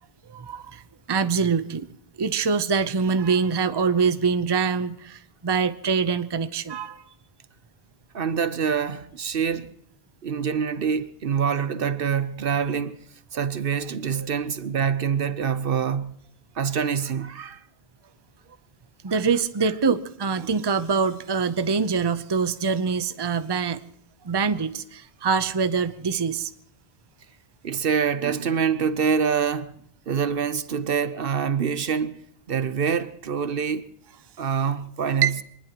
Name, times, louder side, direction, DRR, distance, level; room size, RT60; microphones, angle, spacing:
voice 1, 0.3-0.8 1.1-1.9 2.2-7.0 14.2-14.3 19.0-23.8 24.2-26.5 35.2-35.4, right 5 dB, 30° right, 0.7 m, -24 dB
voice 2, 8.1-9.8 10.2-13.0 13.3-16.1 16.5-17.6 20.4-20.6 27.6-29.7 30.1-32.2 32.5-33.9 34.4-35.3, right 7 dB, 65° right, 1.0 m, -25 dB
24.0 x 20.0 x 3.0 m
omnidirectional pair, 1.0 m